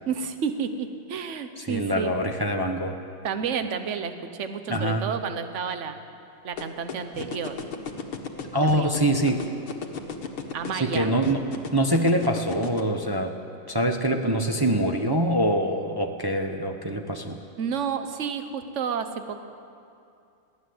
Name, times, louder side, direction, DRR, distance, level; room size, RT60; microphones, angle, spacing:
voice 1, 0.1-2.1 3.2-6.0 6.4-7.6 8.6-8.9 10.5-11.1 17.6-19.4, right 6 dB, 45° right, 8 dB, 1.2 m, -30 dB
voice 2, 1.6-2.9 4.7-5.1 8.5-9.4 10.7-11.5 11.7-13.3 13.7-17.4, right 1 dB, 25° right, 3 dB, 0.5 m, -24 dB
sound 1, 6.6-12.8, left 7 dB, 90° left, 2.3 m, -33 dB
22.0 x 16.5 x 7.9 m, 2.5 s
omnidirectional pair, 2.2 m